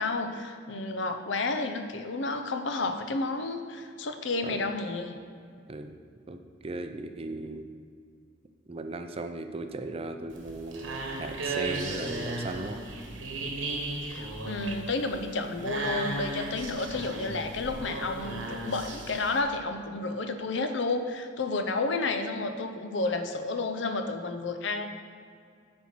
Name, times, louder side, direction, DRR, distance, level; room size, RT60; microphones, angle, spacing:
voice 1, 0.0-5.1 14.0-24.9, left 3 dB, 65° left, 7 dB, 0.7 m, -31 dB
voice 2, 6.3-7.6 8.7-12.8, right 2 dB, 30° right, 7 dB, 0.5 m, -37 dB
sound 1, 10.3-19.4, right 2 dB, 80° right, 1.3 m, -35 dB
9.5 x 4.4 x 6.0 m, 2.2 s
head